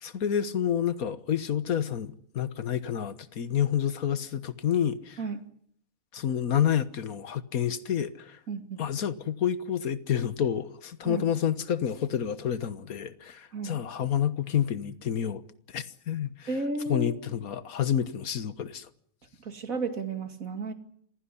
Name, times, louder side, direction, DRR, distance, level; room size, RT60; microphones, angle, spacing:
voice 1, 0.0-5.2 6.1-8.4 8.8-15.4 15.7-16.5 16.9-18.9, left 9 dB, 85° left, 1.7 m, -29 dB
voice 2, 8.5-8.8 11.0-11.3 13.5-13.7 16.5-17.2 19.4-20.7, right 3 dB, 70° right, 2.8 m, -33 dB
26.0 x 16.0 x 9.8 m
omnidirectional pair, 1.5 m